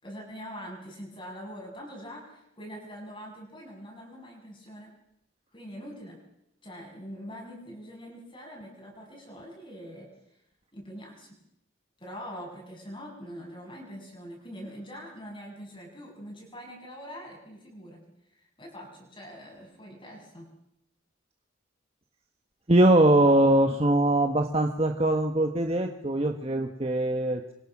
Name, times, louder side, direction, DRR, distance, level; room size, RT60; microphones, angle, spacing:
voice 1, 0.0-4.9 5.5-6.2 6.6-10.1 10.7-11.3 12.0-18.0 18.3-20.5, equal, 25° left, -1 dB, 6.8 m, -43 dB
voice 2, 22.7-27.5, right 1 dB, 30° right, 4 dB, 1.3 m, -22 dB
26.0 x 24.5 x 6.1 m, 0.79 s
head